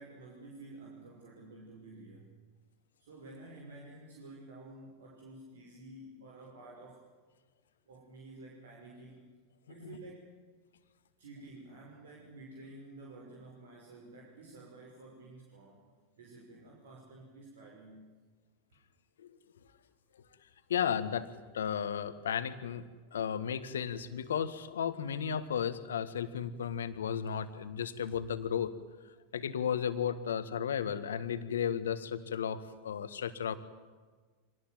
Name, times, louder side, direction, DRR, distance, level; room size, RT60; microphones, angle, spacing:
voice 1, 0.0-2.4 3.0-7.1 7.9-9.4 9.7-10.4 11.2-18.1 18.7-18.8, right 2 dB, 80° right, -1 dB, 5.8 m, -51 dB
voice 2, 20.7-22.8 23.1-28.7 29.3-33.6, left 8 dB, 80° left, 11 dB, 1.8 m, -34 dB
24.5 x 19.0 x 9.3 m, 1.4 s
hypercardioid pair, 95°, 0 cm